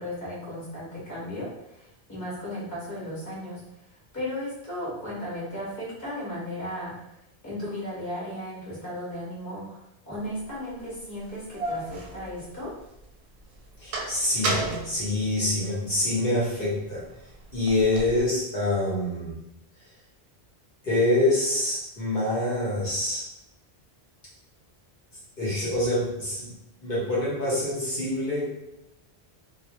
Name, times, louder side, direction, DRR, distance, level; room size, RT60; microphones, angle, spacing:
voice 1, 0.0-3.6 4.1-7.0 7.4-12.7, left 1 dB, 20° left, -7 dB, 0.8 m, -35 dB
sound 1, 10.4-10.5 11.2-13.0 13.4-16.0 16.5-18.2, right 2 dB, 90° right, 0.8 m, -33 dB
voice 2, 13.8-17.0 17.5-19.4 20.8-23.2 25.4-26.5 26.8-28.5, left 1 dB, 60° left, -7 dB, 0.9 m, -26 dB
2.2 x 2.0 x 2.8 m, 0.84 s
omnidirectional pair, 1.1 m